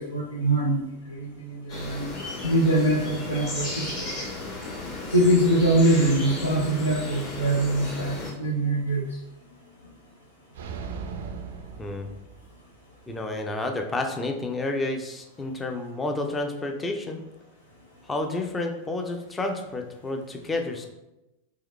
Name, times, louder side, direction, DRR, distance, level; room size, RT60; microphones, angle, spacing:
voice 1, 0.0-2.1 2.4-4.1 5.1-9.0, right 1 dB, 85° left, -4 dB, 0.6 m, -23 dB
sound 1, 1.7-8.3, left 2 dB, 40° left, 1.4 m, -35 dB
sound 2, 10.5-12.7, right 5 dB, 60° right, 0.4 m, -38 dB
voice 2, 13.1-17.2 18.0-20.9, left 2 dB, 15° left, 4 dB, 0.5 m, -30 dB
3.7 x 2.9 x 3.2 m, 0.93 s
figure-of-eight pair, 90°, 0 cm